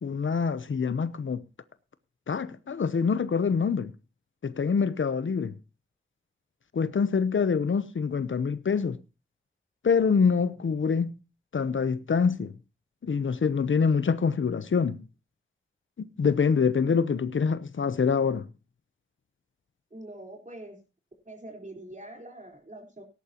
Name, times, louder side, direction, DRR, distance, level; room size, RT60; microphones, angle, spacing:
voice 1, 0.0-1.4 2.3-3.9 4.4-5.5 6.7-9.0 9.8-11.1 11.5-12.5 13.0-15.0 16.2-18.4, left 5 dB, 75° left, 0.8 m, -25 dB
voice 2, 19.9-20.8 21.3-23.0, right 1 dB, 40° right, 4.1 m, -44 dB
18.0 x 10.5 x 2.9 m
wide cardioid pair, 75°, 21 cm